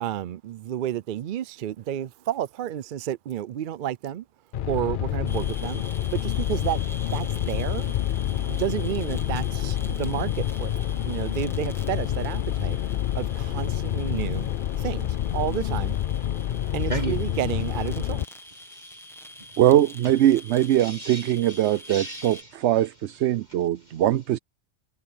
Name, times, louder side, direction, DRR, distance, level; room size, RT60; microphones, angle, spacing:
voice 1, 0.0-4.3 4.7-5.8 6.1-14.5 14.8-16.0 16.7-18.3, right 11 dB, 60° right, 0.6 m, -31 dB
sound 1, 4.5-18.2, left 11 dB, 60° left, 0.6 m, -28 dB
sound 2, 5.3-22.4, left 1 dB, ahead, 1.5 m, -46 dB
voice 2, 16.9-17.2 18.5-19.6 20.0-20.2 20.7-24.0, right 4 dB, 40° right, 1.3 m, -38 dB
voice 3, 19.6-24.4, right 12 dB, 80° right, 0.9 m, -21 dB
omnidirectional pair, 1.1 m